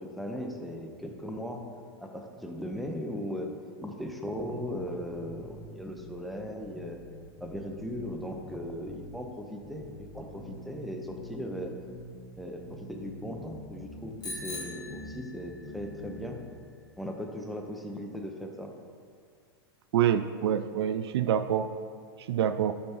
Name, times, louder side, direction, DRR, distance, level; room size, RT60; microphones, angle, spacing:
voice 1, 0.0-1.6 2.0-3.5 3.8-7.0 7.4-11.7 12.4-16.4 17.0-18.7, equal, ahead, 2 dB, 1.0 m, -38 dB
sound 1, 4.4-6.2 6.6-9.2 9.6-12.2 12.6-15.1 15.6-16.3, left 1 dB, 50° left, 2.2 m, -46 dB
Bicycle bell, 14.2-15.8, left 2 dB, 30° left, 1.9 m, -41 dB
voice 2, 19.9-21.7 22.3-22.7, right 9 dB, 75° right, 11 dB, 0.4 m, -26 dB
13.0 x 5.3 x 3.0 m, 2.1 s
hypercardioid pair, 100°, 14 cm